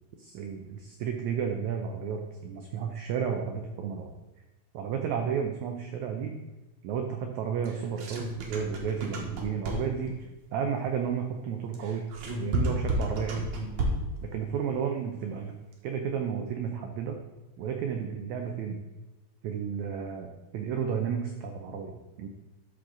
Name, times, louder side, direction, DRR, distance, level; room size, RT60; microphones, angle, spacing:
voice 1, 0.2-4.1 4.7-6.3 6.8-10.2 10.5-12.1 12.4-13.5 14.2-15.5 15.8-17.2 17.6-18.8 19.4-22.3, right 7 dB, 80° right, 4 dB, 1.6 m, -32 dB
sound 1, 7.6-10.1 11.7-14.2, right 1 dB, 60° right, 2.3 m, -32 dB
13.0 x 4.9 x 3.8 m, 1.1 s
omnidirectional pair, 4.1 m